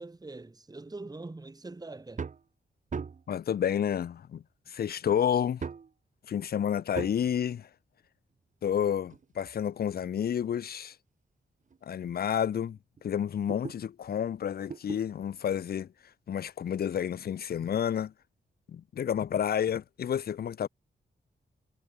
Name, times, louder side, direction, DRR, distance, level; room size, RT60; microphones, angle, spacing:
voice 1, 0.0-2.3, right 2 dB, 20° right, 1.1 m, -43 dB
sound 1, 2.1-2.5 2.9-3.4 4.3-4.4 5.6-5.9 6.9-7.3 8.6-10.3 10.9-11.0 11.7-11.8 12.0-12.1 12.5-13.8 14.7-15.0 16.4-16.5, right 5 dB, 40° right, 0.7 m, -40 dB
voice 2, 3.3-5.7 6.3-7.7 8.6-11.0 11.8-15.9 16.3-18.1 18.7-20.7, left 9 dB, 55° left, 0.4 m, -30 dB
cardioid pair, 60°, 20 cm